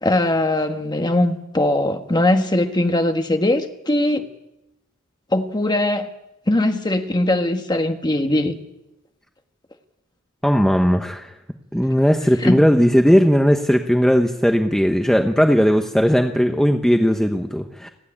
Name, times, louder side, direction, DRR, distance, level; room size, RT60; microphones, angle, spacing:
voice 1, 0.0-4.3 5.3-6.1 6.5-8.6 12.4-12.6, left 1 dB, 20° left, 1.4 m, -20 dB
voice 2, 10.4-11.3 11.7-17.9, equal, ahead, 0.9 m, -17 dB
28.5 x 9.7 x 9.9 m
head